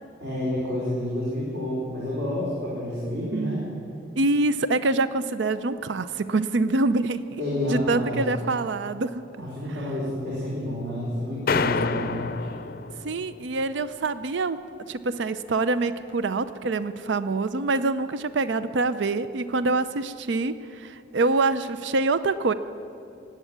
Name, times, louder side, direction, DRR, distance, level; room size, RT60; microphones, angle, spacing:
voice 1, 0.2-3.7 7.4-8.2 9.4-12.5, left 1 dB, 65° right, -7 dB, 4.4 m, -29 dB
voice 2, 3.0-3.7 4.2-7.4 7.7-9.2 13.0-14.6 14.9-22.5, right 3 dB, 80° right, 13 dB, 0.5 m, -25 dB
sound 1, 11.5-13.5, left 5 dB, 50° left, 0.5 m, -28 dB
18.5 x 8.1 x 9.4 m, 2.7 s
head